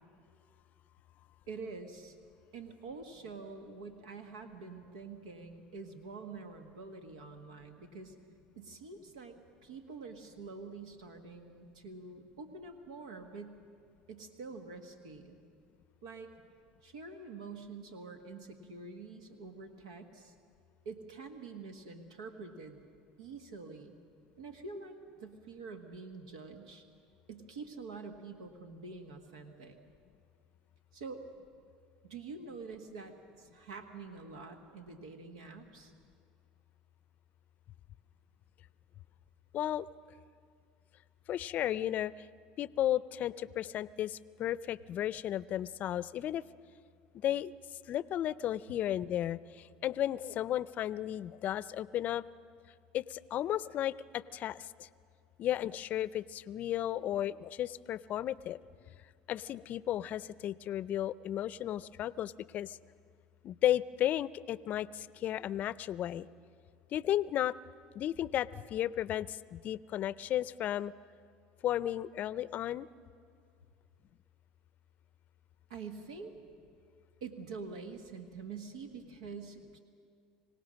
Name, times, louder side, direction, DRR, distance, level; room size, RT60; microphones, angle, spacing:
voice 1, 1.5-2.2 2.5-8.1 8.5-13.6 14.1-15.4 16.0-16.3 16.8-20.3 20.8-22.8 23.2-24.0 24.4-26.8 27.3-29.8 30.9-31.2 32.0-35.9 75.7-76.4 77.2-79.8, right 4 dB, 90° right, 6 dB, 1.5 m, -46 dB
voice 2, 39.5-39.9 41.3-42.1 42.6-46.4 47.2-47.5 47.9-52.2 52.9-54.9 55.4-58.6 59.3-62.8 63.4-66.3 66.9-67.5 67.9-70.9 71.6-72.9, left 12 dB, 50° left, 19 dB, 0.5 m, -34 dB
25.0 x 17.5 x 6.4 m, 2.3 s
supercardioid pair, 95°, 4 cm